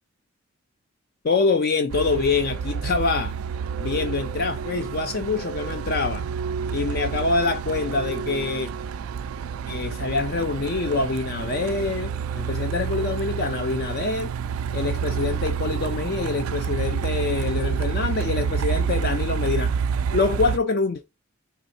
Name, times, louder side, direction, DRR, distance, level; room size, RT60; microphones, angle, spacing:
voice 1, 1.2-3.3 3.8-6.3 6.7-8.7 9.7-14.3 14.7-19.7 20.1-21.0, left 3 dB, 45° left, 0.4 m, -25 dB
Truck, 1.9-20.6, right 6 dB, 90° right, 0.3 m, -28 dB
4.0 x 3.4 x 3.9 m
head